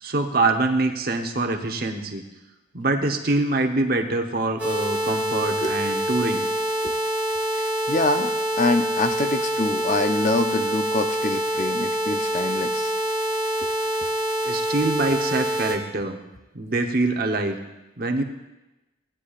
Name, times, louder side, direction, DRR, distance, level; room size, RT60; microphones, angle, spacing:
voice 1, 0.0-2.2 2.7-6.4 14.4-16.2 16.5-17.6 18.0-18.2, right 2 dB, 50° right, 4 dB, 0.9 m, -24 dB
sound 1, 4.6-15.7, equal, 10° right, 2.3 m, -25 dB
voice 2, 7.6-12.9 13.6-13.7, left 2 dB, 40° left, 7 dB, 0.6 m, -25 dB
18.0 x 10.0 x 2.5 m, 1.0 s
head